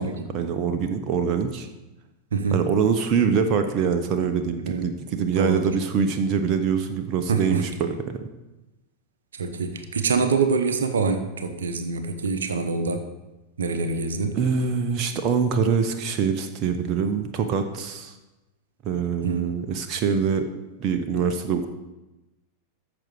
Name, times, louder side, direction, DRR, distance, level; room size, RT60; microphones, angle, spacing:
voice 1, 0.3-1.7 2.5-8.3 14.3-18.2 18.8-20.4 20.8-21.7, right 6 dB, 35° right, 6 dB, 0.9 m, -24 dB
voice 2, 2.3-2.6 4.6-4.8 5.3-5.7 7.3-7.6 9.4-13.0 13.6-14.3 19.2-19.7, right 4 dB, 65° right, 7 dB, 0.9 m, -25 dB
14.0 x 6.2 x 4.7 m, 1.0 s
figure-of-eight pair, 90°, 0 cm